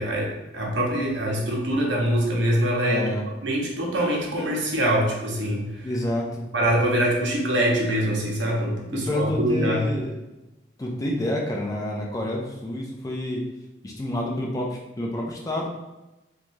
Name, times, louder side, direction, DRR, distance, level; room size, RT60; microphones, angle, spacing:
voice 1, 0.0-3.1 3.4-5.7 6.5-9.8, right 1 dB, 70° right, -2 dB, 0.7 m, -24 dB
voice 2, 2.9-3.3 5.8-6.5 8.9-10.2 10.8-13.4 13.8-15.7, left 1 dB, 20° left, -2 dB, 0.3 m, -28 dB
3.1 x 2.3 x 2.6 m, 1.0 s
head